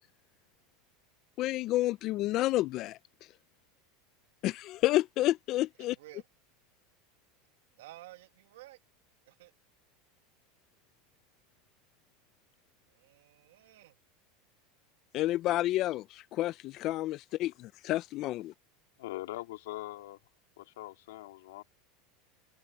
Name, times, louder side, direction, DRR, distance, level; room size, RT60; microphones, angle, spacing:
voice 1, 1.4-3.0 4.4-6.0 15.1-18.5, left 15 dB, 40° left, 0.4 m, -30 dB
voice 2, 7.8-8.8 9.3-9.5 12.9-13.9, right 16 dB, 85° right, 1.3 m, -52 dB
voice 3, 19.0-20.2 20.6-21.6, left 16 dB, 90° left, 3.5 m, -42 dB
supercardioid pair, 155°, 0 cm